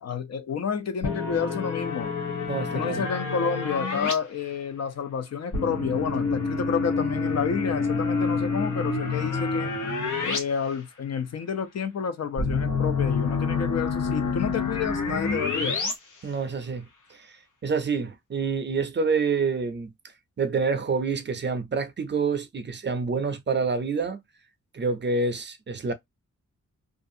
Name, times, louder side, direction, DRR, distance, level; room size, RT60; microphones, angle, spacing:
voice 1, 0.0-2.1 2.7-9.7 10.2-15.8, left 6 dB, 60° left, 0.5 m, -30 dB
sound 1, 1.0-4.1 5.5-10.4 10.7-10.8 12.4-15.9, left 4 dB, 85° left, 1.0 m, -27 dB
voice 2, 2.5-3.1 16.2-16.9 17.2-17.4 17.6-19.9 20.4-24.2 24.7-25.9, right 4 dB, 40° right, 0.5 m, -27 dB
2.5 x 2.4 x 2.5 m
wide cardioid pair, 125°, 30 cm